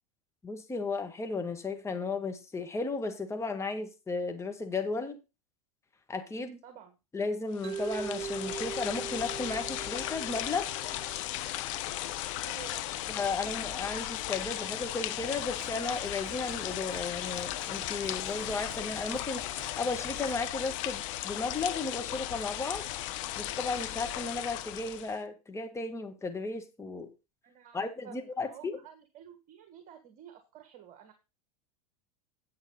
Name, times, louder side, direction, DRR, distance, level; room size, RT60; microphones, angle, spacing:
voice 1, 0.4-5.2 6.1-6.6 7.1-10.7 13.1-19.4 19.8-22.8 23.4-27.1 27.7-28.8, left 3 dB, 15° left, 1.8 m, -34 dB
voice 2, 6.6-7.0 12.4-12.8 27.4-31.1, right 10 dB, 45° right, 1.6 m, -51 dB
sound 1, 7.5-25.2, left 14 dB, 60° left, 1.1 m, -36 dB
Mallet percussion, 7.6-11.7, right 6 dB, 30° right, 0.7 m, -41 dB
Drum kit, 15.1-20.5, right 3 dB, 15° right, 3.0 m, -52 dB
9.6 x 8.0 x 4.0 m
hypercardioid pair, 95°, 18 cm